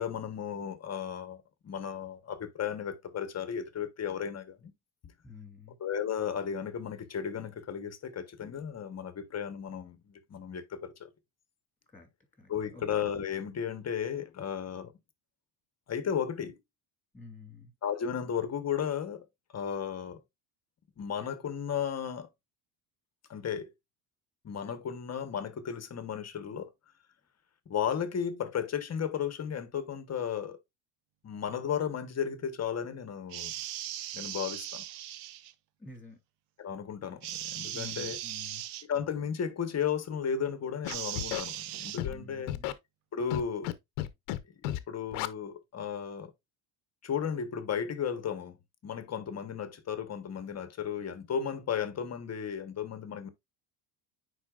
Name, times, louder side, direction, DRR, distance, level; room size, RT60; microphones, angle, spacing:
voice 1, 0.0-4.7 5.8-10.0 10.3-11.1 12.5-14.9 15.9-16.6 17.8-19.3 19.5-20.2 21.0-22.3 23.3-23.7 24.4-26.7 27.7-30.6 31.2-33.5 34.1-34.8 36.6-38.2 38.9-42.5 43.1-43.7 44.6-46.3 47.0-48.6 48.8-53.3, left 7 dB, 30° left, 1.0 m, -34 dB
voice 2, 5.2-5.8 11.9-12.1 12.4-12.8 17.1-17.7 35.8-36.2 37.7-38.6 42.0-42.7, left 3 dB, 5° left, 2.6 m, -49 dB
sound 1, 33.3-35.5 37.2-38.9 40.9-42.0, right 13 dB, 75° right, 0.7 m, -38 dB
Scratching (performance technique), 40.8-41.4 42.0-42.1 42.5-42.7 43.3-43.7 44.0-44.4 44.6-44.8 45.1-45.3, left 14 dB, 85° left, 0.8 m, -32 dB
9.7 x 4.1 x 2.3 m
cardioid pair, 115°, 49 cm